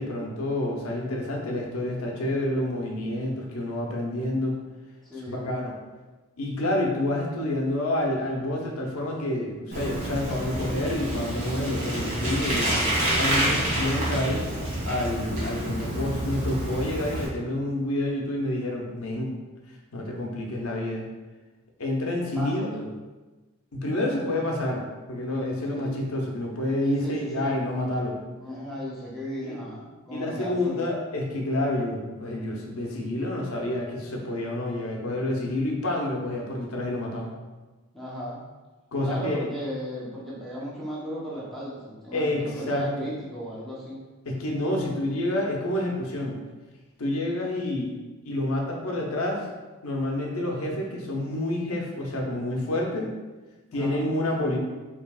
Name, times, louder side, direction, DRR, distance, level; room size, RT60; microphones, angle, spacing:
voice 1, 0.0-4.6 5.3-5.8 6.4-12.8 13.1-14.4 14.9-19.3 19.9-21.1 21.8-22.8 23.7-28.2 29.4-29.6 30.1-37.3 38.9-39.5 42.1-43.1 44.2-46.4 47.0-47.9 48.2-49.5 49.8-53.1 53.7-54.6, left 1 dB, 80° left, -1 dB, 0.8 m, -28 dB
voice 2, 5.0-5.5 12.5-12.8 22.3-22.9 25.7-26.0 26.8-27.5 28.3-30.8 37.9-38.4 39.0-44.0 53.7-54.1, equal, ahead, -8 dB, 0.9 m, -36 dB
Bicycle, 9.7-17.3, right 1 dB, 35° right, 1.1 m, -28 dB
4.7 x 3.1 x 2.4 m, 1.2 s
head